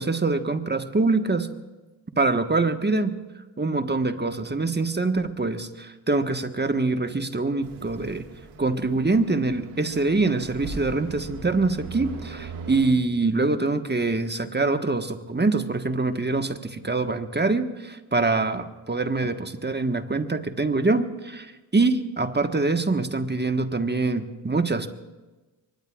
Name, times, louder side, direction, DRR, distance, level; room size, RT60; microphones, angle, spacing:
voice 1, 0.0-1.5 2.2-3.1 3.6-8.2 8.6-24.9, right 3 dB, 20° right, 7 dB, 1.5 m, -24 dB
sound 1, 7.6-12.9, right 4 dB, 85° right, 2.0 m, -40 dB
23.5 x 20.0 x 2.5 m, 1.2 s
supercardioid pair, 50°, 50 cm